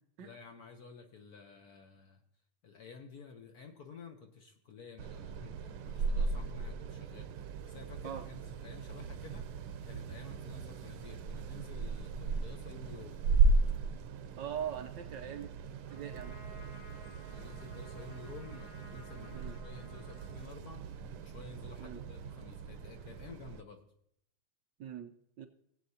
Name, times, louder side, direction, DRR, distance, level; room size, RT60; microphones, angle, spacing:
voice 1, 0.2-2.2 2.6-7.3 7.7-9.4 9.8-13.2 17.3-23.8, left 5 dB, 55° left, 4 dB, 1.1 m, -52 dB
sound 1, 5.0-23.6, right 4 dB, 90° right, 1.6 m, -36 dB
voice 2, 14.4-15.5 15.9-16.4 19.3-19.6 21.8-22.0 24.8-25.5, right 9 dB, 70° right, 7 dB, 1.2 m, -41 dB
Trumpet, 15.9-21.1, equal, 30° left, 3.5 m, -55 dB
19.0 x 8.1 x 2.8 m, 0.73 s
omnidirectional pair, 2.4 m